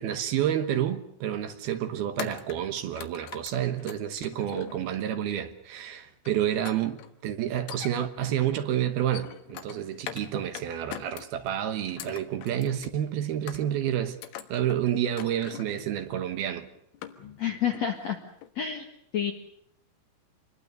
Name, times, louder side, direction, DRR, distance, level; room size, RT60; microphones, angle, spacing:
voice 1, 0.0-14.2 14.5-16.7, right 10 dB, 70° right, 2.6 m, -29 dB
sound 1, 0.8-1.0 2.2-5.1 6.3-7.1 7.5-8.4 8.9-10.3 10.5-11.5 11.9-13.0 13.5-13.9 14.2-14.8 15.2-15.8 16.3-16.4 16.7-17.5 17.7-18.1 18.4-18.5, left 11 dB, 85° left, 3.9 m, -43 dB
voice 2, 17.4-18.2 18.6-18.9 19.1-19.3, left 9 dB, 65° left, 1.7 m, -28 dB
26.5 x 21.5 x 6.8 m
omnidirectional pair, 5.7 m